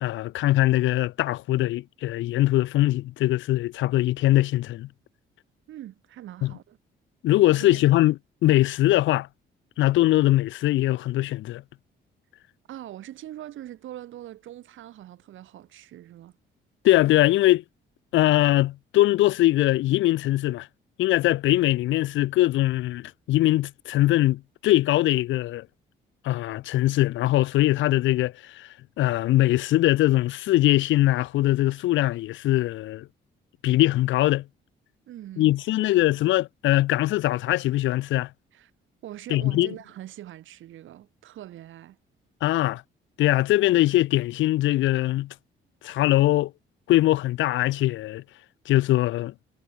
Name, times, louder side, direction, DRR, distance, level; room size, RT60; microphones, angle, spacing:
voice 1, 0.0-4.9 6.4-6.5 7.2-8.1 8.4-9.3 9.8-11.6 16.8-17.6 18.1-20.7 21.0-25.7 26.2-28.7 29.0-33.1 33.6-34.4 35.4-38.3 39.3-39.7 42.4-42.8 43.2-45.3 45.8-46.5 46.9-48.2 48.7-49.3, left 16 dB, 75° left, 0.5 m, -22 dB
voice 2, 5.7-6.8 7.4-7.8 12.7-16.4 35.1-35.9 38.5-38.7 39.0-42.0, right 13 dB, 80° right, 3.5 m, -42 dB
cardioid pair, 90°, 20 cm